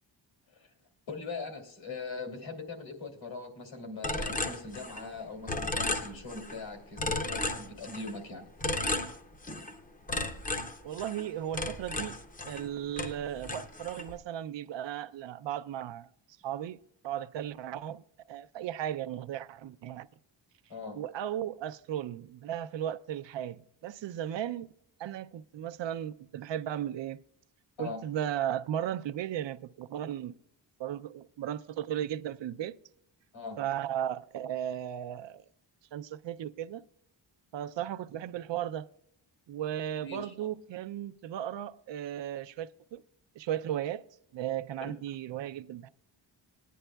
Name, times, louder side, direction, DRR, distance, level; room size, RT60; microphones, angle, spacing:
voice 1, 1.1-8.4 20.7-21.0 27.8-28.0 33.3-33.6 40.0-40.3 44.8-44.9, left 3 dB, 80° left, 2.5 m, -41 dB
sound 1, 4.0-5.2 5.5-6.6 7.0-8.2 8.6-9.7 10.1-12.7 13.0-14.1, left 2 dB, 20° left, 0.6 m, -34 dB
voice 2, 10.8-12.2 12.5-16.1 16.4-16.8 17.0-18.0 18.3-20.1 20.9-24.7 25.0-27.2 27.8-30.3 30.8-32.8 33.6-35.4 35.9-36.8 37.5-38.9 39.5-43.0 43.4-44.0 44.3-45.9, right 11 dB, 75° right, 0.5 m, -36 dB
19.0 x 10.0 x 2.3 m
wide cardioid pair, 175°, 44 cm